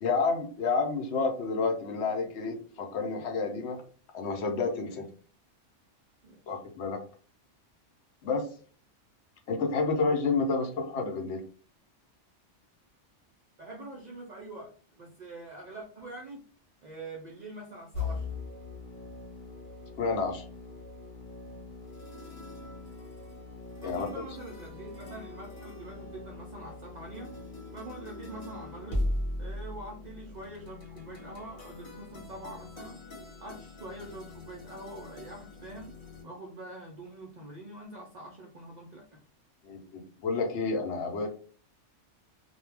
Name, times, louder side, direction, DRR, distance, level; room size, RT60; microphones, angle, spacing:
voice 1, 0.0-3.8 4.1-5.0 6.5-7.0 8.2-8.5 9.5-11.4 20.0-20.4 23.8-24.1 39.6-41.3, left 4 dB, 70° left, 3 dB, 0.8 m, -29 dB
voice 2, 13.6-16.4 16.8-18.3 23.8-27.4 27.7-29.1 29.4-33.0 33.4-36.0 36.2-39.2, right 2 dB, 65° right, -1 dB, 0.4 m, -44 dB
sound 1, 17.9-36.2, left 2 dB, 45° left, 1.0 m, -40 dB
2.3 x 2.1 x 3.2 m, 0.41 s
omnidirectional pair, 1.2 m